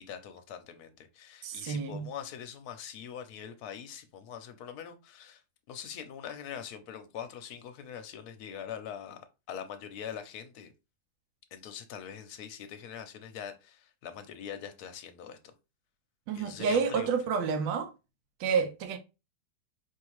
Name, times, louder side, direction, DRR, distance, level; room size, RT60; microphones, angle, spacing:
voice 1, 0.0-5.4 5.7-10.7 11.5-15.5 16.3-17.2, left 8 dB, 65° left, 1.0 m, -43 dB
voice 2, 1.4-2.1 16.3-17.9 18.4-19.0, right 5 dB, 85° right, 1.4 m, -29 dB
4.9 x 2.8 x 3.1 m
omnidirectional pair, 2.0 m